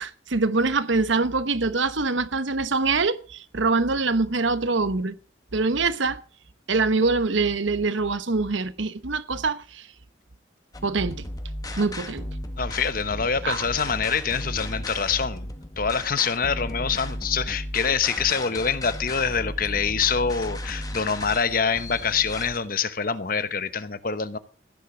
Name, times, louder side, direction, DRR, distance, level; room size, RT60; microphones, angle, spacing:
voice 1, 0.0-5.1 5.5-6.2 6.7-9.9 10.8-11.2 11.7-12.3 13.4-13.6, right 3 dB, 80° right, 1.0 m, -24 dB
sound 1, 10.7-22.6, left 1 dB, 20° left, 1.6 m, -35 dB
voice 2, 12.6-24.4, left 6 dB, 45° left, 1.0 m, -25 dB
15.5 x 10.5 x 6.2 m
head